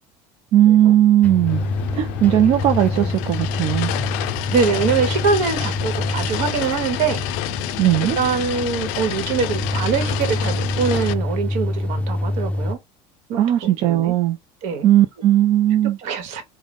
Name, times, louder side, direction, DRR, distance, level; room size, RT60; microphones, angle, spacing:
voice 1, 0.5-1.7 1.9-3.9 7.8-8.2 13.4-14.4 14.8-16.0, right 12 dB, 45° right, 0.4 m, -17 dB
sound 1, 1.2-12.7, left 1 dB, 10° left, 0.5 m, -27 dB
sound 2, 1.5-11.1, left 12 dB, 75° left, 0.4 m, -28 dB
voice 2, 4.5-7.2 8.2-12.8 13.3-14.1 14.6-14.9 16.0-16.4, right 5 dB, 65° right, 1.2 m, -23 dB
3.7 x 2.2 x 3.4 m
cardioid pair, 140°, 13 cm